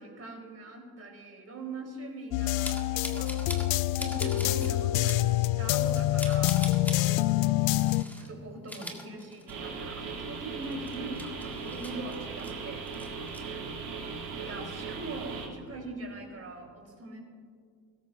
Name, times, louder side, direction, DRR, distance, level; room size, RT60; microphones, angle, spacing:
voice 1, 0.0-3.6 4.0-7.6 8.0-13.2 13.5-13.7 14.3-17.2, right 2 dB, 30° right, 1 dB, 3.7 m, -42 dB
sound 1, 2.3-8.0, left 16 dB, 55° left, 0.5 m, -26 dB
sound 2, 2.6-3.7 4.0-4.7 5.1-5.2 5.7-7.0 7.7-8.3 8.6-9.8 10.1-10.2 10.6-12.5 12.9-13.4, left 1 dB, 5° left, 1.8 m, -41 dB
sound 3, 9.5-15.5, right 4 dB, 60° right, 2.9 m, -38 dB
23.0 x 13.0 x 2.6 m, 2.1 s
hypercardioid pair, 75°, 46 cm